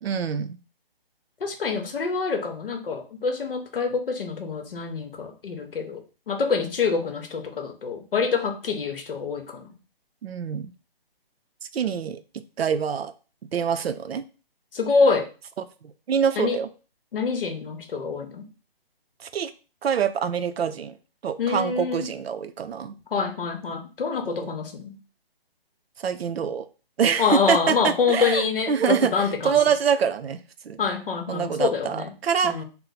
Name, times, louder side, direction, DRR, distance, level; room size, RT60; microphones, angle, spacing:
voice 1, 0.0-0.6 10.2-10.7 11.7-12.2 12.6-13.1 13.5-14.2 15.8-16.7 19.2-19.5 19.8-21.0 21.2-23.0 24.4-24.5 26.0-26.7 27.0-30.8 31.3-32.6, right 7 dB, 90° right, 11 dB, 0.5 m, -25 dB
voice 2, 1.4-9.7 14.7-15.3 16.4-16.6 17.1-18.5 21.4-22.1 23.1-25.0 27.2-29.6 30.8-32.1 32.4-32.6, left 5 dB, 65° left, 5 dB, 0.8 m, -26 dB
2.8 x 2.0 x 3.9 m, 0.34 s
hypercardioid pair, 170°, 30 cm